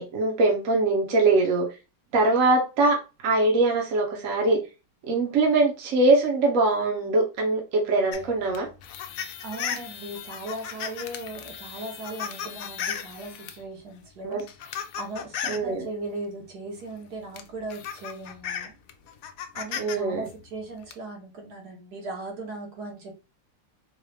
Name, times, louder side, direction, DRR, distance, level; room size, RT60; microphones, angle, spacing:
voice 1, 0.0-1.7 2.1-4.6 5.1-8.7 14.2-14.4 15.5-15.9 19.8-20.2, right 2 dB, 60° right, 0 dB, 1.2 m, -22 dB
sound 1, 8.1-13.6 14.3-15.7 16.9-17.0 17.4-20.0 20.3-20.9, left 8 dB, 70° left, 0.9 m, -36 dB
voice 2, 9.4-14.4 14.9-18.8 19.5-23.2, right 2 dB, 75° right, 1 dB, 1.6 m, -38 dB
3.9 x 2.4 x 3.3 m, 0.29 s
omnidirectional pair, 1.7 m